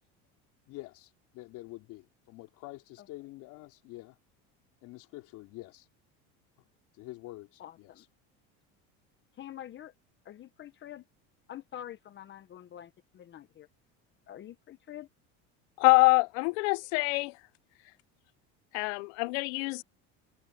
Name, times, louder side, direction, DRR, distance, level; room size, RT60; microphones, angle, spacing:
voice 1, 0.7-4.2 4.8-5.9 6.6-6.7 6.9-8.1, left 19 dB, 65° left, 3.3 m, -47 dB
voice 2, 7.6-8.0 9.4-9.9 10.2-11.0 11.5-13.7 14.3-15.1, left 11 dB, 35° left, 1.0 m, -46 dB
voice 3, 15.8-17.3 18.7-19.8, left 27 dB, 80° left, 0.6 m, -25 dB
cardioid pair, 130°, 33 cm